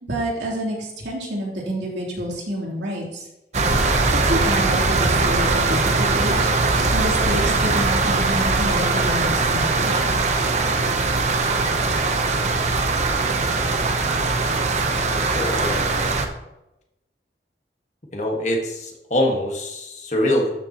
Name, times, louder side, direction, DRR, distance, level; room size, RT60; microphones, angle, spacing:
voice 1, 0.0-3.3 3.9-10.2, right 1 dB, 80° right, -4 dB, 3.1 m, -28 dB
sound 1, 3.5-16.3, right 3 dB, 40° right, 0.8 m, -21 dB
voice 2, 15.1-16.3 18.1-20.5, left 1 dB, 40° left, 1 dB, 1.5 m, -24 dB
12.5 x 7.0 x 3.0 m, 0.93 s
head